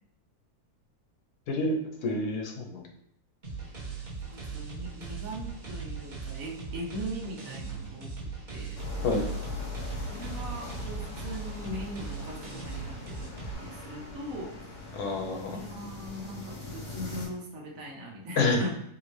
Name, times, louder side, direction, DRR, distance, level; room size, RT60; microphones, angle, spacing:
voice 1, 2.0-2.8 9.0-9.2 14.9-15.5 18.4-18.6, left 3 dB, 80° left, 1 dB, 1.3 m, -28 dB
sound 1, 3.4-13.5, right 5 dB, 35° right, 1.0 m, -39 dB
voice 2, 4.3-8.8 10.1-14.5 15.6-18.7, equal, 65° right, -1 dB, 1.3 m, -40 dB
sound 2, 8.7-17.3, left 3 dB, 55° left, 1.3 m, -40 dB
3.9 x 3.4 x 3.2 m, 0.77 s
omnidirectional pair, 1.6 m